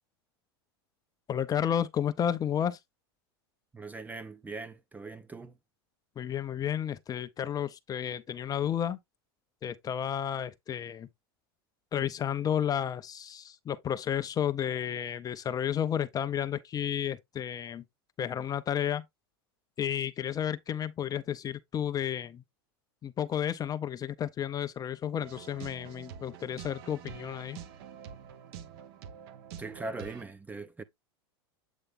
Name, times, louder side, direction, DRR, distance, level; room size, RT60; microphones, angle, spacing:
voice 1, 1.3-2.8 6.2-9.0 9.6-11.1 11.9-17.8 18.2-19.0 19.8-22.4 23.0-27.6, left 9 dB, 30° left, 0.6 m, -32 dB
voice 2, 3.7-5.6 29.6-30.8, right 3 dB, 10° right, 0.6 m, -41 dB
sound 1, 25.2-30.2, right 8 dB, 65° right, 1.0 m, -46 dB
8.2 x 3.2 x 3.6 m
hypercardioid pair, 100°, 13 cm